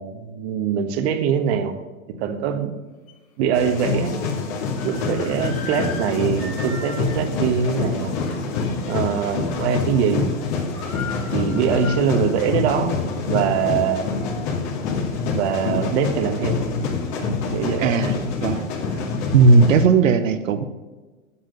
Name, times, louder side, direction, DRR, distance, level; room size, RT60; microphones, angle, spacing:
voice 1, 0.0-1.8 2.2-2.7 3.4-4.1 4.8-8.1 8.9-10.3 11.3-13.0 13.3-14.1 15.3-16.6 17.2-18.0, right 7 dB, 50° right, 8 dB, 1.4 m, -23 dB
sound 1, 3.1-3.2 3.7-3.9 4.8-8.6 9.0-9.2 9.6-10.0 10.2-10.3 10.5-12.5 12.9-13.0 13.6-14.9, left 4 dB, 80° left, 2.6 m, -38 dB
sound 2, 3.5-19.8, left 4 dB, 50° left, 2.4 m, -26 dB
voice 2, 17.8-18.1 18.4-18.6 19.3-20.6, right 4 dB, 70° right, 10 dB, 1.0 m, -16 dB
8.4 x 7.9 x 5.3 m, 1.3 s
hypercardioid pair, 115°, 41 cm